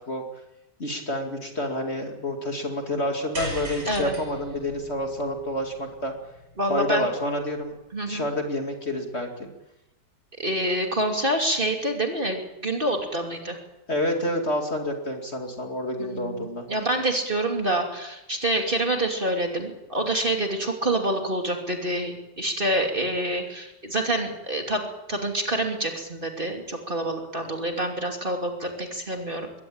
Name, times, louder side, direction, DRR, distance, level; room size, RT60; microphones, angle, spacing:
voice 1, 0.8-6.1 6.7-7.7 8.1-9.5 13.9-16.7, left 1 dB, 35° left, 3 dB, 2.7 m, -28 dB
sound 1, 3.3-7.7, right 1 dB, 65° right, 6.0 m, -38 dB
voice 2, 6.6-7.1 7.9-8.2 10.4-13.6 16.0-29.5, right 1 dB, 30° right, 3 dB, 2.9 m, -27 dB
22.0 x 17.5 x 8.8 m, 0.95 s
omnidirectional pair, 1.9 m